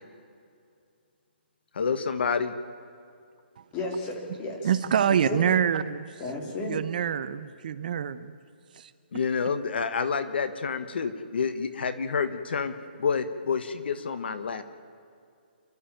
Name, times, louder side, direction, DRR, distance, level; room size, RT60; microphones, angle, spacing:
voice 1, 1.7-2.5 9.1-12.7 13.0-14.6, left 5 dB, 65° left, 11 dB, 1.5 m, -28 dB
voice 2, 3.7-4.7 5.3-5.4 6.2-6.8, left 2 dB, 20° left, 2 dB, 3.3 m, -33 dB
voice 3, 4.6-6.0 6.7-8.3 8.8-8.9, right 8 dB, 50° right, 13 dB, 0.9 m, -25 dB
29.0 x 12.5 x 9.1 m, 2.3 s
hypercardioid pair, 165°, 6 cm